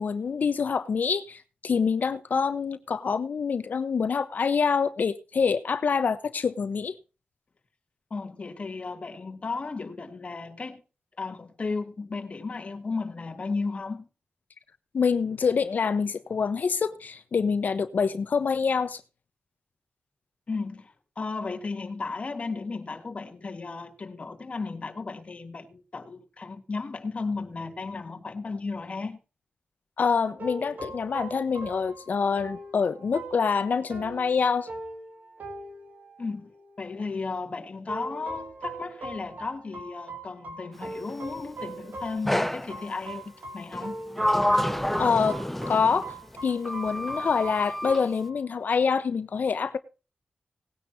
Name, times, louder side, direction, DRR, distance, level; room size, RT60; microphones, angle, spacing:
voice 1, 0.0-6.9 14.9-19.0 30.0-34.7 45.0-45.4 45.7-46.1 46.4-49.8, left 5 dB, 65° left, 1.1 m, -26 dB
voice 2, 8.1-10.8 11.2-14.1 20.5-29.2 36.2-36.5 36.8-44.0, left 4 dB, 40° left, 1.8 m, -34 dB
sound 1, 30.4-37.0 37.9-48.7, right 2 dB, 75° right, 4.6 m, -41 dB
Sliding door, 42.3-42.7 43.7-46.2 46.7-48.1, left 1 dB, 5° left, 0.5 m, -28 dB
18.5 x 10.0 x 2.8 m
wide cardioid pair, 130°, 3 cm